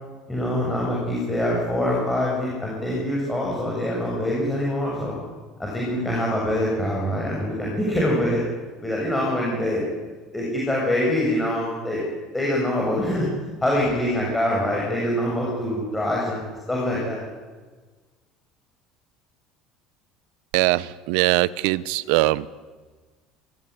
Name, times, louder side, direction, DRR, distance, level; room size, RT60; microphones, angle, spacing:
voice 1, 0.3-5.2 5.6-8.4 8.8-9.9 10.3-12.0 12.3-13.3 13.6-17.2, left 1 dB, 10° left, -3 dB, 7.6 m, -24 dB
voice 2, 20.5-22.5, right 19 dB, 80° right, 18 dB, 0.9 m, -21 dB
24.0 x 18.5 x 9.8 m, 1.4 s
cardioid pair, 125°, 0 cm